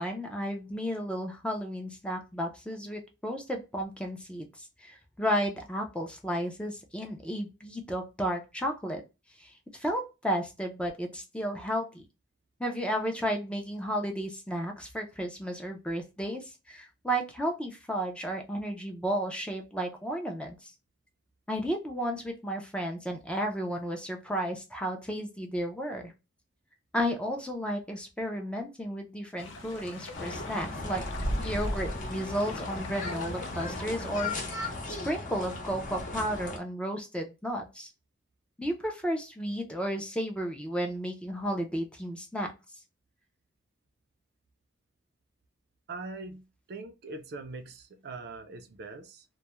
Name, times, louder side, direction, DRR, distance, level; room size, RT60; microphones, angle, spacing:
voice 1, 0.0-9.0 9.4-12.0 12.6-20.7 21.5-26.1 26.9-31.0 31.4-34.3 34.9-37.9 38.6-42.5, equal, 5° left, 0.4 m, -33 dB
sound 1, 29.4-34.8, left 3 dB, 85° left, 0.5 m, -43 dB
sound 2, 30.1-36.6, left 1 dB, 45° left, 0.7 m, -35 dB
voice 2, 45.9-49.4, right 3 dB, 60° right, 0.4 m, -42 dB
2.2 x 2.1 x 2.9 m
head